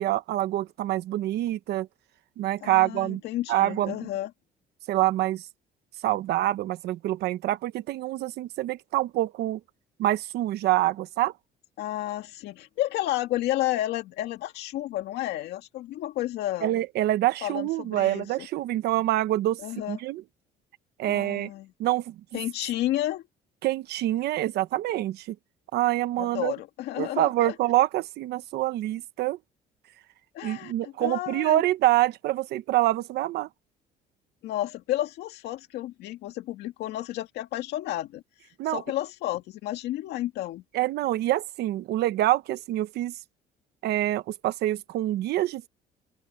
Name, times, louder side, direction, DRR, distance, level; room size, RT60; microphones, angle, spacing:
voice 1, 0.0-1.9 2.4-3.2 3.5-4.0 4.9-5.4 6.0-9.6 10.0-11.3 16.6-19.6 19.9-20.2 21.0-21.5 21.8-22.4 23.6-25.3 25.7-26.5 27.0-29.4 30.4-33.5 38.6-38.8 40.7-43.1 43.8-45.7, right 15 dB, 75° right, 1.0 m, -26 dB
voice 2, 2.6-4.3 11.8-16.8 17.4-18.3 19.6-20.0 21.0-21.7 22.3-23.2 26.2-27.5 30.3-31.6 34.4-38.2 38.7-40.6, left 14 dB, 80° left, 2.1 m, -31 dB
open air
cardioid pair, 110°, 17 cm